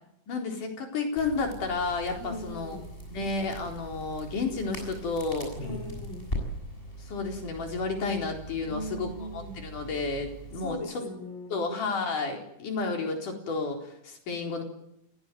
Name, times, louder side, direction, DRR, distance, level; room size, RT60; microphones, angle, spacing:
voice 1, 0.3-2.8 3.1-5.5 7.1-11.0 11.5-14.6, left 3 dB, 85° left, 2 dB, 5.7 m, -31 dB
Crackle, 1.2-10.7, equal, 15° left, 7.3 m, -41 dB
voice 2, 2.2-2.9 5.6-6.3 8.6-9.6 10.5-11.5, equal, 40° left, 4 dB, 5.2 m, -39 dB
29.0 x 16.5 x 9.3 m, 0.79 s
omnidirectional pair, 3.5 m